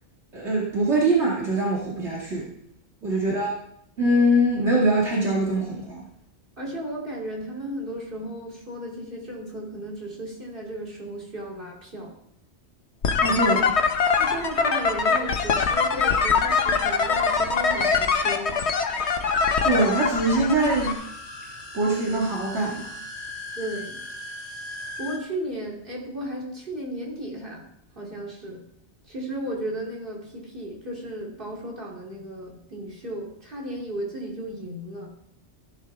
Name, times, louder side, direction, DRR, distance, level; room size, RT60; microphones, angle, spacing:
voice 1, 0.3-2.5 3.0-3.5 4.0-6.0 13.2-13.7 19.6-21.0 21.7-22.9, right 1 dB, 70° right, -4 dB, 2.5 m, -23 dB
voice 2, 6.6-12.2 14.2-18.6 23.5-24.0 25.0-27.7 27.9-28.6 29.0-35.1, right 1 dB, 50° right, -3 dB, 3.4 m, -34 dB
sound 1, 13.0-20.9, left 5 dB, 70° left, 1.3 m, -23 dB
sound 2, 20.5-25.2, left 1 dB, 35° left, 1.7 m, -38 dB
15.5 x 10.0 x 3.5 m, 0.73 s
omnidirectional pair, 1.2 m